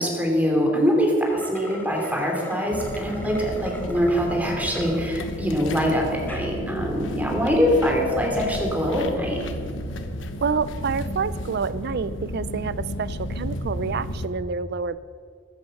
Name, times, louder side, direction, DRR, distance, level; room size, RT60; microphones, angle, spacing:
voice 1, 0.0-9.4, equal, 10° right, 0 dB, 3.0 m, -23 dB
sound 1, 1.2-5.0 5.5-5.6 6.1-6.5, left 1 dB, 10° left, 1.4 m, -38 dB
sound 2, 2.7-14.3, equal, 70° left, 1.2 m, -33 dB
voice 2, 10.4-15.0, right 5 dB, 60° right, 16 dB, 0.5 m, -28 dB
14.5 x 11.5 x 6.5 m, 2.1 s
head